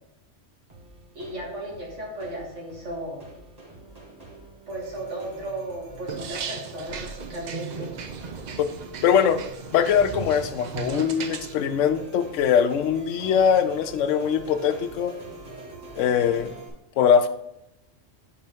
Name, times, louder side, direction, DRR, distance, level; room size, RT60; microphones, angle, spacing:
sound 1, 0.7-16.7, right 2 dB, 35° right, 1.5 m, -45 dB
voice 1, 1.1-3.3 4.7-7.9, right 1 dB, 75° right, -2 dB, 2.0 m, -35 dB
sound 2, 6.1-11.5, right 6 dB, 55° right, 0.5 m, -36 dB
voice 2, 9.0-9.4 9.7-15.1 16.0-16.5 17.0-17.3, left 8 dB, 85° left, 10 dB, 0.9 m, -21 dB
7.8 x 4.4 x 3.6 m, 0.82 s
omnidirectional pair, 1.2 m